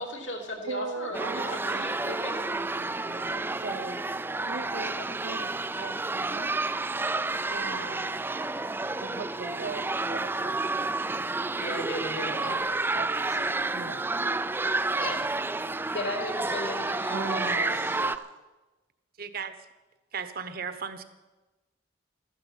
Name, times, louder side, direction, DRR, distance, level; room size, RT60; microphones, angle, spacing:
voice 1, 0.0-2.4 5.0-5.1 11.6-12.6 12.9-13.4 15.0-15.2 15.9-18.0, left 1 dB, 80° left, 0 dB, 3.1 m, -37 dB
voice 2, 0.6-4.0 4.4-6.6 7.5-8.2 9.0-10.8 12.1-12.6 13.0-13.3 13.7-14.1 17.1-18.4, right 4 dB, 85° right, 6 dB, 0.8 m, -39 dB
sound 1, 1.1-18.2, right 2 dB, 10° right, 0.4 m, -30 dB
voice 3, 19.2-19.5 20.1-21.0, right 6 dB, 55° right, 11 dB, 1.1 m, -35 dB
13.5 x 10.5 x 8.4 m, 1.1 s
head